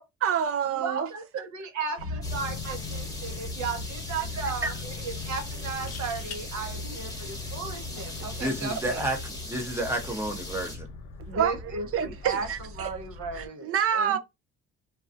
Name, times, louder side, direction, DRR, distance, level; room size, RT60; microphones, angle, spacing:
voice 1, 0.2-1.1 2.7-2.8 8.4-8.5 11.3-11.6 11.9-12.9 13.3-14.2, right 8 dB, 50° right, 0.4 m, -27 dB
voice 2, 0.7-9.0 11.3-14.2, right 4 dB, 70° right, 0.8 m, -35 dB
sound 1, 2.0-13.5, left 3 dB, 90° left, 0.8 m, -39 dB
sound 2, 2.2-10.8, left 1 dB, 10° left, 1.0 m, -41 dB
sound 3, 2.8-3.0 3.3-3.4 5.6-6.4 8.3-8.5, left 7 dB, 55° left, 0.6 m, -44 dB
voice 3, 8.2-10.9, right 1 dB, 10° right, 0.7 m, -31 dB
2.4 x 2.3 x 2.5 m
cardioid pair, 90°, 30 cm